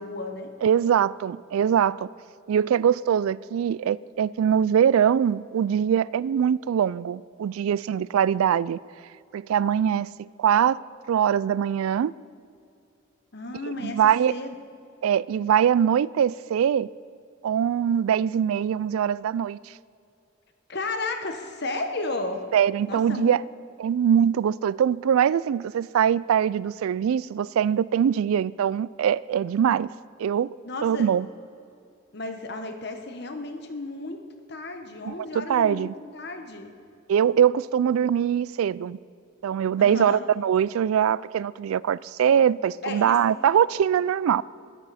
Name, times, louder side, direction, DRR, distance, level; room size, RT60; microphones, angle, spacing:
voice 1, 0.0-0.5 13.3-14.0 14.3-14.6 20.7-22.4 22.9-23.4 30.6-31.1 32.1-36.7 39.8-40.2 42.8-43.2, left 2 dB, 50° left, 1.2 m, -33 dB
voice 2, 0.6-2.1 2.5-8.8 9.3-10.1 10.4-10.8 11.1-12.1 13.8-14.3 15.0-16.9 17.4-19.6 22.5-23.4 23.8-29.9 30.2-30.5 30.8-31.3 35.0-35.9 37.1-39.0 39.4-44.4, right 8 dB, 90° right, 0.3 m, -22 dB
21.0 x 11.5 x 4.2 m
head